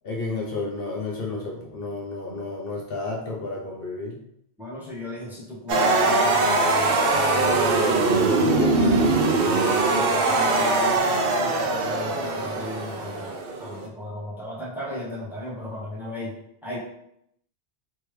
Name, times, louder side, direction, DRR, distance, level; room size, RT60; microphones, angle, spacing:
voice 1, 0.0-4.2 8.4-9.3, left 3 dB, 60° left, -2 dB, 0.9 m, -31 dB
voice 2, 4.6-8.1 9.9-16.8, left 1 dB, ahead, -6 dB, 0.9 m, -36 dB
sound 1, 5.7-13.9, right 3 dB, 60° right, 0.7 m, -21 dB
3.3 x 3.2 x 3.2 m, 0.75 s
omnidirectional pair, 1.2 m